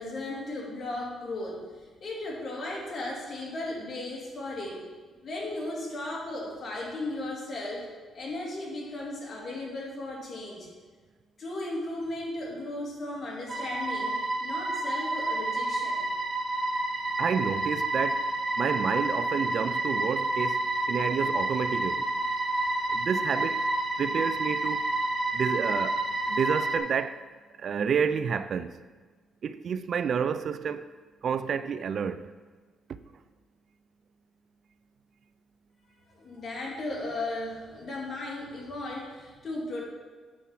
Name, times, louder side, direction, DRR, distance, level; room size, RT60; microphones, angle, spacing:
voice 1, 0.0-4.9 5.2-7.9 8.1-10.7 11.4-16.1 36.1-39.8, left 2 dB, 45° left, 2.3 m, -36 dB
sound 1, 13.5-26.8, right 2 dB, 35° right, 0.8 m, -29 dB
voice 2, 17.2-18.3 18.6-20.6 20.9-22.1 22.9-23.7 24.0-24.9 25.3-27.2 27.6-28.7 29.4-30.9 31.2-32.3, right 7 dB, 55° right, 0.3 m, -29 dB
8.4 x 4.7 x 5.8 m
cardioid pair, 90°, 0 cm